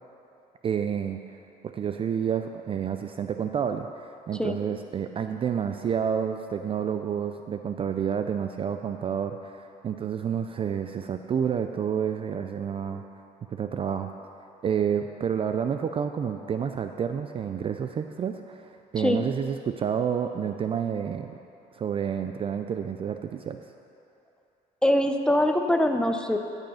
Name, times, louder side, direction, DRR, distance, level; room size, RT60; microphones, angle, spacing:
voice 1, 0.6-1.2 1.6-13.0 13.5-14.1 14.6-21.4 21.7-23.6, right 7 dB, 35° right, 7 dB, 0.4 m, -29 dB
voice 2, 24.8-26.4, left 1 dB, 5° left, 5 dB, 0.6 m, -23 dB
13.0 x 5.4 x 5.6 m, 2.7 s
cardioid pair, 110°, 17 cm